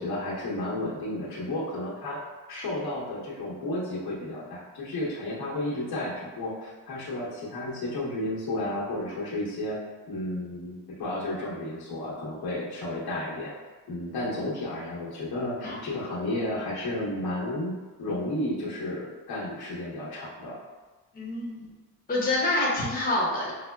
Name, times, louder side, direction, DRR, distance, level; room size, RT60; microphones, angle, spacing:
voice 1, 0.0-2.2 2.5-9.8 10.1-13.5 13.9-20.6, left 1 dB, 70° left, -7 dB, 1.2 m, -32 dB
voice 2, 21.1-21.7 22.1-23.5, left 2 dB, 25° left, -6 dB, 0.9 m, -27 dB
5.8 x 2.1 x 2.3 m, 1.3 s
cardioid pair, 125°, 39 cm